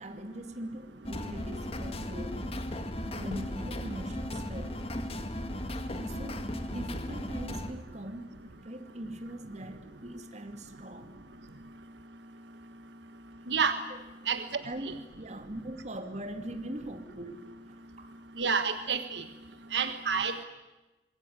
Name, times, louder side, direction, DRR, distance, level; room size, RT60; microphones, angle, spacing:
voice 1, 0.0-2.4 3.0-4.8 6.0-11.2 13.9-14.1 14.6-18.1, right 1 dB, 40° right, 6 dB, 2.6 m, -42 dB
sound 1, 1.0-7.7, left 1 dB, 35° left, 2.0 m, -36 dB
voice 2, 13.5-13.8 14.3-14.6 18.4-19.2 19.7-20.4, right 6 dB, 80° right, 9 dB, 1.3 m, -29 dB
25.5 x 21.5 x 9.6 m, 1.1 s
head